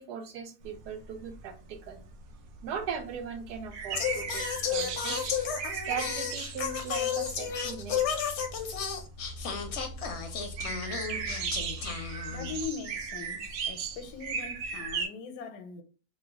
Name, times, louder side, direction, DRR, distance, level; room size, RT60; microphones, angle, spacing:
voice 1, 0.0-2.0 2.6-5.3 5.7-8.0, right 7 dB, 90° right, 1.2 m, -39 dB
sound 1, 0.6-15.1, right 6 dB, 70° right, 0.9 m, -38 dB
Singing, 3.9-12.6, left 7 dB, 65° left, 0.7 m, -33 dB
voice 2, 11.2-11.6 12.3-15.8, left 6 dB, 85° left, 1.2 m, -41 dB
3.0 x 2.2 x 3.4 m
omnidirectional pair, 1.7 m